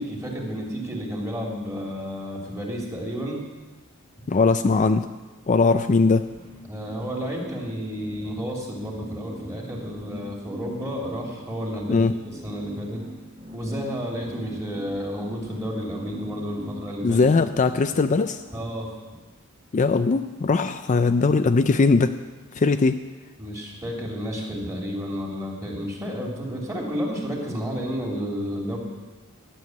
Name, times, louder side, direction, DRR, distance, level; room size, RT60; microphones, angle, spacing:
voice 1, 0.0-3.4 6.7-12.1 12.4-13.1 13.5-17.2 18.5-18.9 23.4-28.8, equal, 15° right, -1 dB, 2.8 m, -31 dB
voice 2, 4.3-5.1 5.5-6.2 11.9-12.1 17.0-18.4 19.7-22.1 22.5-23.0, left 4 dB, 35° left, 9 dB, 0.4 m, -20 dB
sound 1, 6.1-18.6, equal, 35° right, 2.0 m, -41 dB
12.5 x 7.0 x 9.4 m, 1.2 s
head